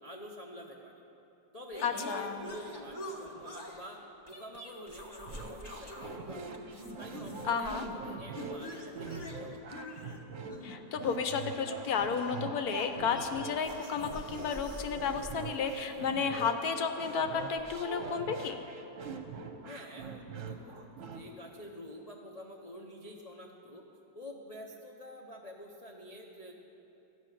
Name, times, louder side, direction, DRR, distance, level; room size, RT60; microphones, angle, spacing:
voice 1, 0.0-1.0 1.5-4.0 4.3-6.4 7.0-9.6 19.6-23.8 24.1-26.5, equal, 85° left, -1 dB, 0.3 m, -47 dB
sound 1, 1.7-3.8 4.3-6.2 6.4-8.0 8.3-16.3 17.1-18.5, left 1 dB, 20° left, 0.7 m, -45 dB
voice 2, 1.8-2.4 7.5-7.9 10.6-18.6, left 6 dB, 70° left, 7 dB, 1.0 m, -32 dB
sound 2, 5.3-21.2, right 4 dB, 55° right, 1.1 m, -44 dB
12.5 x 6.2 x 9.0 m, 3.0 s
omnidirectional pair, 1.9 m